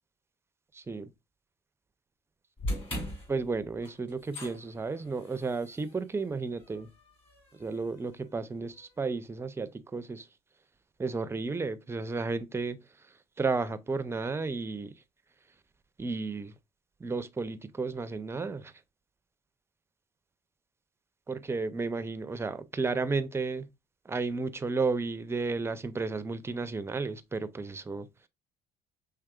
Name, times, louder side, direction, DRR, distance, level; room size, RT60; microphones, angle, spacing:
voice 1, 0.7-1.1 3.3-6.9 7.5-10.3 11.0-12.8 13.4-15.0 16.0-16.5 17.0-18.7 21.3-23.7 24.1-28.1, right 4 dB, 15° right, 0.4 m, -33 dB
sound 1, 2.6-8.8, left 1 dB, 35° left, 2.6 m, -41 dB
4.7 x 3.3 x 2.2 m
cardioid pair, 110°, 17 cm